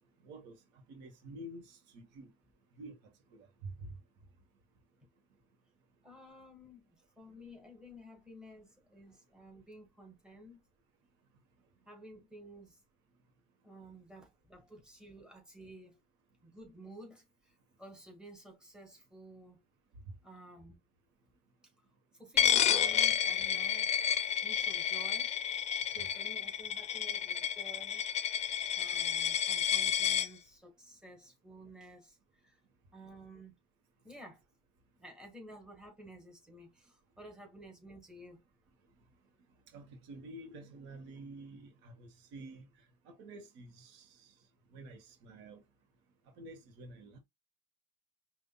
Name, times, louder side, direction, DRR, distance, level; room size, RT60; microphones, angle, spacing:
voice 1, 0.2-0.6 0.9-2.3 2.8-3.0 3.3-3.9 39.7-42.7 43.0-44.3 44.7-45.6 46.4-47.2, right 2 dB, 80° right, 1.2 m, -49 dB
voice 2, 6.0-10.6 11.8-12.8 13.6-16.0 16.4-19.6 20.2-20.8 22.1-23.9 24.4-28.0 28.7-32.2 32.4-32.6 32.9-33.6 34.0-34.4 35.0-38.4, equal, 5° right, 1.7 m, -53 dB
Coin (dropping), 22.4-30.3, left 9 dB, 40° left, 0.5 m, -30 dB
5.3 x 2.6 x 2.3 m
cardioid pair, 125°, 18 cm